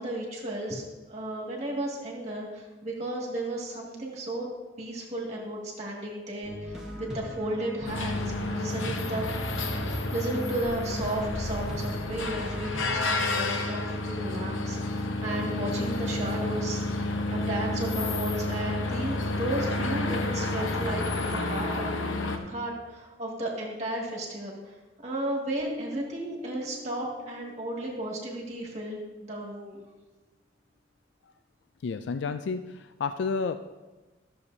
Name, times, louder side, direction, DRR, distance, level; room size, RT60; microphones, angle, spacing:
voice 1, 0.0-4.5 4.8-9.3 9.7-21.9 22.5-24.8 25.0-29.8, right 1 dB, 35° right, -3 dB, 1.9 m, -34 dB
sound 1, 6.4-13.2, equal, 5° right, 1.2 m, -38 dB
sound 2, 7.9-22.4, left 2 dB, 90° left, 0.8 m, -30 dB
Bass guitar, 25.6-28.0, left 3 dB, 70° right, 0.9 m, -44 dB
voice 2, 31.8-33.6, left 4 dB, 70° left, 9 dB, 0.3 m, -31 dB
14.0 x 6.9 x 2.7 m, 1.2 s
head